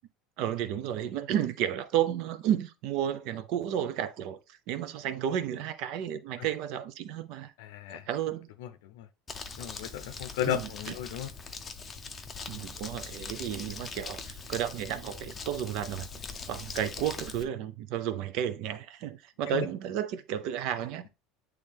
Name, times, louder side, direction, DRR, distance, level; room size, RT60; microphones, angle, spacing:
voice 1, 0.4-7.5 7.9-8.5 10.5-10.9 12.5-16.1 16.5-21.1, right 10 dB, 60° right, 0.6 m, -32 dB
voice 2, 7.6-8.1 8.6-9.1 9.6-11.3 19.4-19.7, left 11 dB, 90° left, 0.5 m, -35 dB
Crumpling crinkling, 9.3-17.4, left 4 dB, 20° left, 0.6 m, -42 dB
8.4 x 3.3 x 3.5 m
cardioid pair, 150°, 0 cm